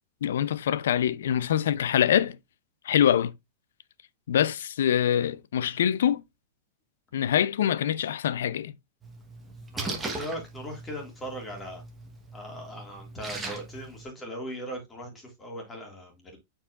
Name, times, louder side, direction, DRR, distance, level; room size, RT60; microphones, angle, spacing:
voice 1, 0.2-2.4 2.8-3.3 4.3-6.2 7.1-8.7, left 10 dB, 90° left, 0.5 m, -24 dB
Splash splatter, 9.0-14.1, right 2 dB, 10° right, 1.1 m, -39 dB
voice 2, 9.7-11.8 12.3-16.4, equal, 10° left, 1.9 m, -39 dB
8.4 x 4.8 x 2.4 m
supercardioid pair, 170°, 0 cm